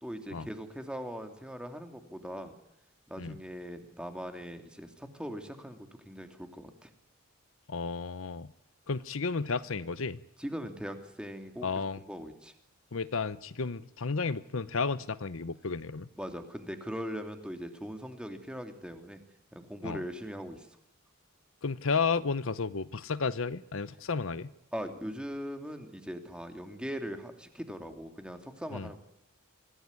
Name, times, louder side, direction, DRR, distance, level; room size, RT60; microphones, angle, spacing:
voice 1, 0.0-2.5 3.1-6.9 10.4-11.7 12.0-12.5 16.2-19.2 19.5-20.7 24.7-29.0, equal, 5° right, 6 dB, 2.8 m, -40 dB
voice 2, 7.7-8.5 8.9-10.2 11.6-12.0 12.9-16.1 19.8-20.0 21.6-24.5 28.7-28.9, left 4 dB, 70° left, 15 dB, 0.8 m, -32 dB
25.5 x 17.0 x 9.9 m, 0.81 s
head